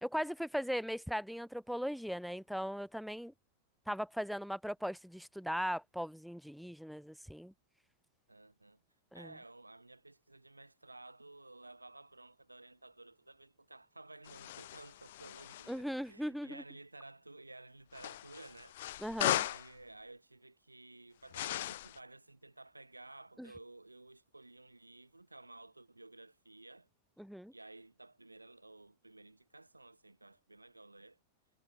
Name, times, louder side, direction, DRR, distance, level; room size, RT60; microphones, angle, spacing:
voice 1, 0.0-3.3 3.9-7.5 9.1-9.3 15.7-16.6 19.0-19.4 27.2-27.5, equal, ahead, 1.0 m, -38 dB
voice 2, 8.3-8.8 9.1-18.8 19.3-26.9 27.5-31.2, right 2 dB, 85° right, 3.6 m, -54 dB
sound 1, 14.2-15.8 17.9-19.7 21.3-22.0, left 14 dB, 55° left, 0.6 m, -37 dB
figure-of-eight pair, 90°, 0 cm